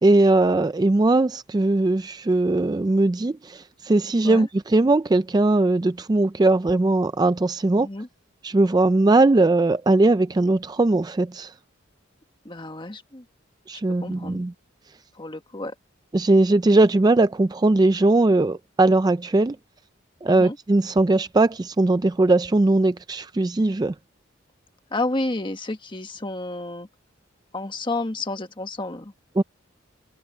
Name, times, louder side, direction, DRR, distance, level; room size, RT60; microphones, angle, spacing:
voice 1, 0.0-7.9 8.4-11.5 13.7-14.5 16.1-19.6 20.2-23.9 29.4-29.5, right 2 dB, 20° right, 0.3 m, -19 dB
voice 2, 12.4-13.2 13.9-14.4 15.1-15.7 20.3-20.6 24.9-26.9 27.5-29.1, left 2 dB, 25° left, 1.4 m, -30 dB
head